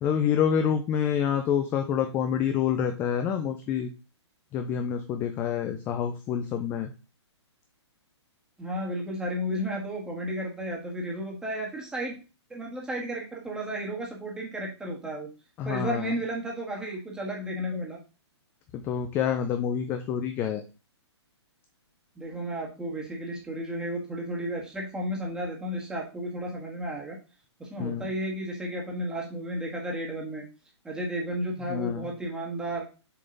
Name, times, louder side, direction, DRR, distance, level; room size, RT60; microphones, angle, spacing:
voice 1, 0.0-3.9 4.5-6.9 15.6-16.1 18.7-20.6 27.8-28.0 31.7-32.1, left 8 dB, 15° left, 7 dB, 0.4 m, -27 dB
voice 2, 8.6-12.1 12.5-15.3 15.6-18.0 22.1-27.2 27.6-30.4 30.8-32.9, equal, 5° right, -1 dB, 1.6 m, -33 dB
6.7 x 3.6 x 3.9 m, 0.32 s
hypercardioid pair, 150°, 15 cm